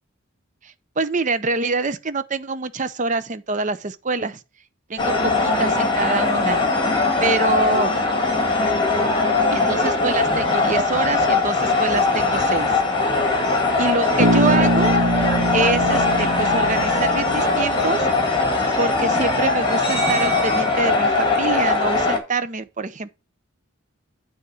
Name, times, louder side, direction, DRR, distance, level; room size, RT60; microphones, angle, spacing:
voice 1, 0.6-4.4 4.9-6.6 7.2-7.9 9.5-12.8 13.1-13.3 13.8-15.0 15.5-18.1 18.8-23.1, right 3 dB, 35° right, 0.6 m, -25 dB
sound 1, 5.0-22.2, left 3 dB, 20° left, 1.8 m, -20 dB
Bass guitar, 14.2-18.1, equal, 85° right, 1.5 m, -23 dB
9.6 x 3.6 x 7.0 m
head